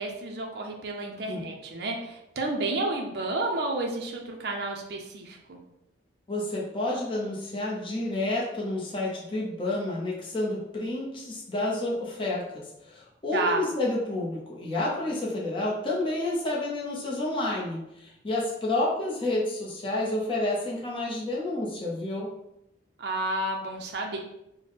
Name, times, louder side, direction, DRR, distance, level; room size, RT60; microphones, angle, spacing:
voice 1, 0.0-5.6 13.3-13.6 23.0-24.2, right 2 dB, 55° right, 1 dB, 0.4 m, -31 dB
voice 2, 6.3-22.3, left 2 dB, 25° left, -4 dB, 0.6 m, -30 dB
3.4 x 2.1 x 3.9 m, 0.85 s
head